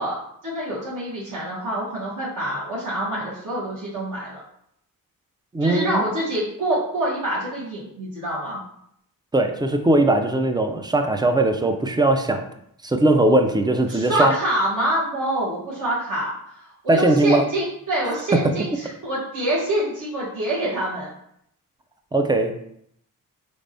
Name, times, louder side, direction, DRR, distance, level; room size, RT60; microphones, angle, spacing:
voice 1, 0.0-4.4 5.6-8.6 13.9-21.1, right 1 dB, 60° right, -7 dB, 1.2 m, -26 dB
voice 2, 5.5-6.0 9.3-12.4 12.8-14.3 16.9-17.4 18.4-18.5 22.1-22.5, right 2 dB, 15° right, 6 dB, 0.3 m, -19 dB
4.2 x 3.4 x 2.6 m, 0.73 s
cardioid pair, 115°, 35 cm